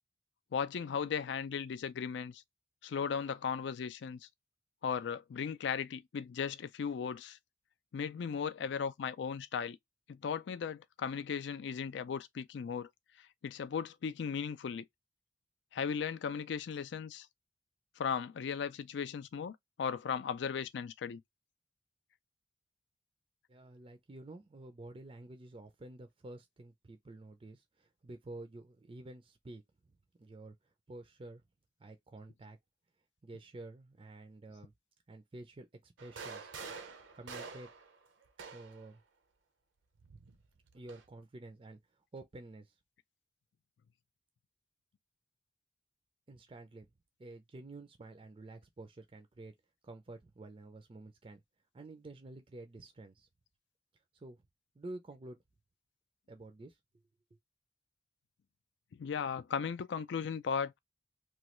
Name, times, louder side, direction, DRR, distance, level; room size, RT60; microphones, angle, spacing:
voice 1, 0.5-2.4 2.8-4.2 4.8-7.4 7.9-9.8 10.1-12.9 13.4-14.9 15.7-17.3 18.0-21.2 58.9-60.8, left 6 dB, 65° left, 0.3 m, -37 dB
voice 2, 23.5-29.6 30.2-30.5 30.9-31.4 31.8-32.6 33.2-34.7 35.1-36.5 37.1-37.7 38.5-39.0 40.7-41.8 42.1-42.7 46.3-46.9 47.2-49.5 49.8-51.4 51.7-53.3 54.1-54.4 54.8-55.4 56.3-56.8, right 2 dB, 30° right, 0.4 m, -50 dB
sound 1, 36.0-38.9 40.0-41.1, right 5 dB, 85° right, 0.7 m, -47 dB
3.0 x 2.3 x 2.9 m
head